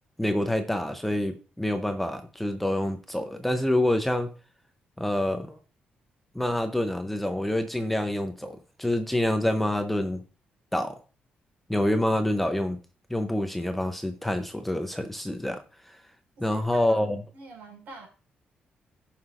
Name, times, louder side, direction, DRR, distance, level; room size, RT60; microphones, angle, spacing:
voice 1, 0.2-4.3 5.0-5.6 6.3-10.2 10.7-11.0 11.7-12.8 13.1-15.6 16.4-17.2, left 1 dB, 5° left, 7 dB, 0.6 m, -27 dB
voice 2, 16.4-17.0 17.3-18.1, right 3 dB, 65° right, 1 dB, 3.7 m, -45 dB
17.5 x 5.8 x 2.4 m, 0.36 s
cardioid pair, 165°, 3 cm